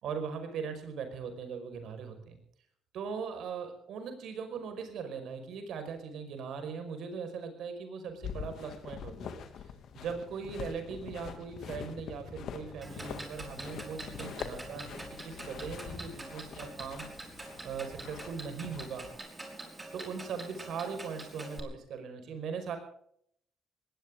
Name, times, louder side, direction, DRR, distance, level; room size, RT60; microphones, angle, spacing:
voice 1, 0.0-2.4 2.9-9.7 9.9-17.1 17.6-19.1 19.9-22.8, right 6 dB, 70° right, 7 dB, 5.4 m, -40 dB
sound 1, 8.2-19.2, left 7 dB, 65° left, 2.4 m, -44 dB
Clock, 12.8-21.6, right 2 dB, 20° right, 5.4 m, -45 dB
20.0 x 18.5 x 3.8 m, 0.66 s
cardioid pair, 85°, 0 cm